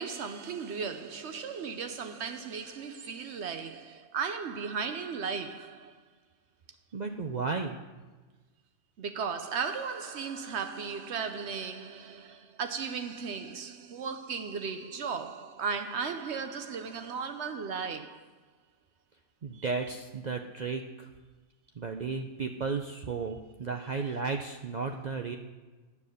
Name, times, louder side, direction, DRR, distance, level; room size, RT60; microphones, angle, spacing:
voice 1, 0.0-6.0 9.0-18.3 19.5-19.6, right 5 dB, 70° right, 0.9 m, -36 dB
voice 2, 6.9-7.8 19.4-21.1 21.8-25.4, right 4 dB, 50° right, 0.6 m, -34 dB
9.9 x 6.9 x 6.4 m
omnidirectional pair, 1.3 m